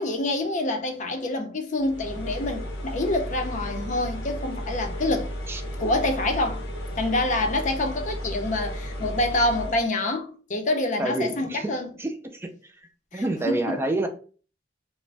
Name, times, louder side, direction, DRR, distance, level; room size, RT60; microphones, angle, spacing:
voice 1, 0.0-5.3 5.8-6.6 7.0-11.9 13.1-13.8, left 2 dB, 45° left, 0.5 m, -27 dB
sound 1, 1.8-9.9, equal, 80° left, 0.7 m, -34 dB
voice 2, 11.0-11.7 12.0-12.5 13.1-14.1, right 1 dB, 15° right, 0.3 m, -27 dB
2.4 x 2.0 x 3.2 m
head